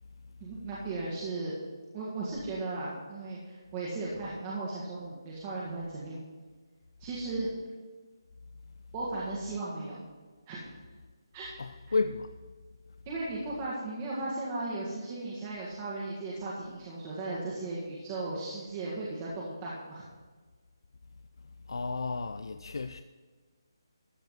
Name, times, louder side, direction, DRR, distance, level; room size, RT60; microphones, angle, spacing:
voice 1, 0.4-1.6 1.9-6.2 7.0-7.5 8.9-10.0 10.5-10.6 11.3-11.5 13.1-20.0, right 2 dB, 20° right, 1.8 m, -36 dB
voice 2, 11.6-12.4 21.7-23.0, left 4 dB, 75° left, 0.5 m, -32 dB
13.5 x 4.8 x 7.6 m
hypercardioid pair, 165°, 2 cm